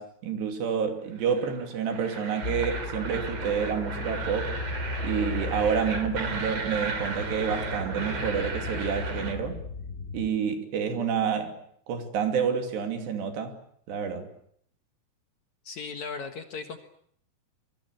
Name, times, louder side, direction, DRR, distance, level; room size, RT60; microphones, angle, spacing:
voice 1, 0.0-4.6 5.0-9.6 10.1-11.6 11.9-13.6 13.9-14.3, right 7 dB, 80° right, 4.9 m, -29 dB
sound 1, 1.2-9.3, right 4 dB, 40° right, 3.9 m, -35 dB
sound 2, 2.4-10.3, left 3 dB, 25° left, 2.7 m, -36 dB
voice 2, 15.6-16.8, left 5 dB, 55° left, 2.3 m, -37 dB
27.0 x 23.0 x 8.0 m
omnidirectional pair, 4.9 m